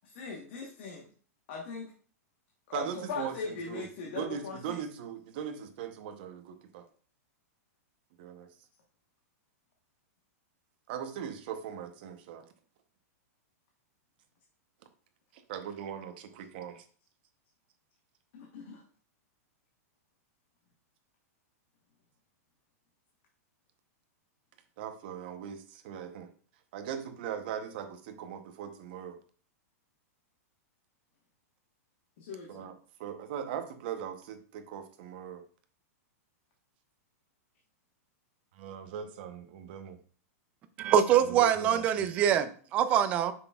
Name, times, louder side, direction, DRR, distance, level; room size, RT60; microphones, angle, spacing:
voice 1, 0.0-1.1 1.5-1.9 2.7-4.8 18.3-18.8 32.2-32.6, left 5 dB, 40° left, 0 dB, 1.1 m, -40 dB
voice 2, 2.7-6.9 8.2-8.5 10.9-12.5 15.3-16.8 24.8-26.3 26.7-29.2 32.5-32.7 33.0-35.4 38.5-40.0 41.3-42.1, right 8 dB, 35° right, 8 dB, 0.7 m, -40 dB
voice 3, 40.8-43.3, right 9 dB, 15° right, 11 dB, 0.3 m, -24 dB
7.5 x 6.0 x 2.3 m, 0.43 s
supercardioid pair, 175°, 9 cm